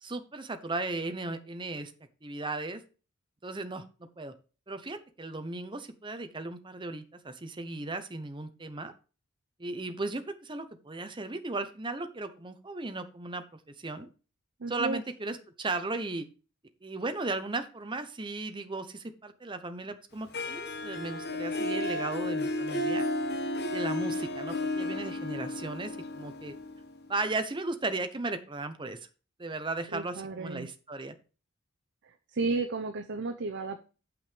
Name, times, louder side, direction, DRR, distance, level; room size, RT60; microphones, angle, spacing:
voice 1, 0.0-1.9 2.2-2.8 3.4-3.8 4.2-4.3 4.7-8.9 9.6-14.1 14.7-16.3 16.8-23.1 23.7-26.5 27.1-29.1 29.4-31.1, right 2 dB, 25° right, 8 dB, 0.9 m, -36 dB
voice 2, 14.6-15.0 29.9-30.7 32.3-33.8, right 3 dB, 55° right, 5 dB, 0.7 m, -33 dB
Harp, 20.3-27.2, left 1 dB, 50° left, 1.1 m, -33 dB
7.8 x 5.9 x 5.1 m, 0.34 s
head